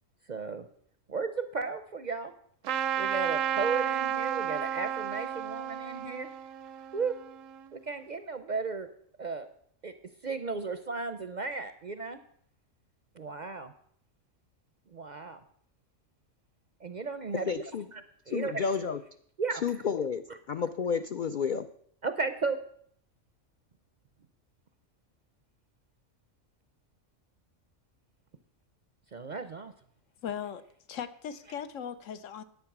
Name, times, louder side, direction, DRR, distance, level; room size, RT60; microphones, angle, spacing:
voice 1, 0.3-0.7 1.1-2.3 3.0-6.3 6.9-7.1 7.7-8.9 9.2-9.5 9.8-9.9 10.2-12.2 13.2-13.7 14.9-15.4 16.8-18.6 19.4-19.8 22.0-22.6 29.1-29.7, right 4 dB, 50° right, 10 dB, 0.6 m, -34 dB
Trumpet, 2.6-7.7, right 9 dB, 80° right, 1.0 m, -32 dB
voice 2, 17.5-17.8 18.3-19.0 19.6-20.2 20.5-21.7, left 6 dB, 55° left, 9 dB, 0.5 m, -30 dB
voice 3, 30.2-30.6 30.9-32.4, left 8 dB, 75° left, 12 dB, 1.1 m, -38 dB
10.5 x 8.7 x 6.0 m, 0.64 s
omnidirectional pair, 1.3 m